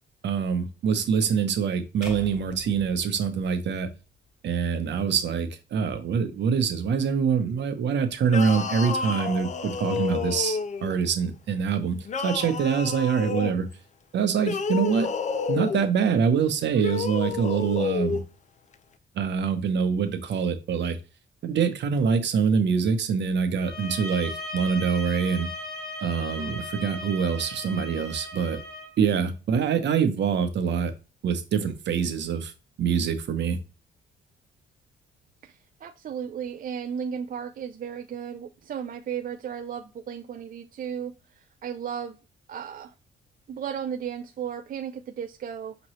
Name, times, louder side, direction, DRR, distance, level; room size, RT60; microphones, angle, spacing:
voice 1, 0.2-3.9 4.4-12.0 12.2-13.7 14.1-15.1 15.5-18.2 19.1-21.0 21.4-25.5 26.0-28.6 29.0-30.9 31.2-32.5 32.8-33.6, right 6 dB, 65° right, 0.9 m, -25 dB
sound 1, 2.0-4.3, left 2 dB, 5° right, 1.6 m, -44 dB
sound 2, 8.2-11.0 12.0-13.6 14.3-15.9 16.7-18.2, left 5 dB, 35° left, 0.5 m, -30 dB
sound 3, 23.6-28.9, left 2 dB, 55° left, 1.4 m, -37 dB
voice 2, 35.4-42.2 42.5-42.9 43.5-45.8, right 8 dB, 45° right, 0.4 m, -35 dB
5.2 x 3.0 x 3.1 m
cardioid pair, 90°, 20 cm